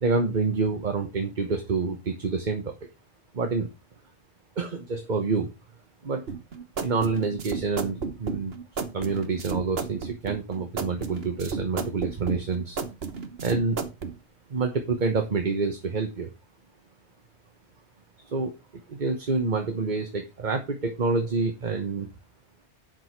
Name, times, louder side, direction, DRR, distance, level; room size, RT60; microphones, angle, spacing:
voice 1, 0.0-2.7 3.3-3.7 4.6-5.5 6.0-6.2 6.8-12.8 13.4-13.8 14.5-16.3 18.2-18.5 18.9-22.1, right 4 dB, 45° right, 5 dB, 1.2 m, -27 dB
sound 1, 6.3-14.1, right 5 dB, 65° right, 1.4 m, -33 dB
8.9 x 6.2 x 4.6 m, 0.26 s
omnidirectional pair, 1.1 m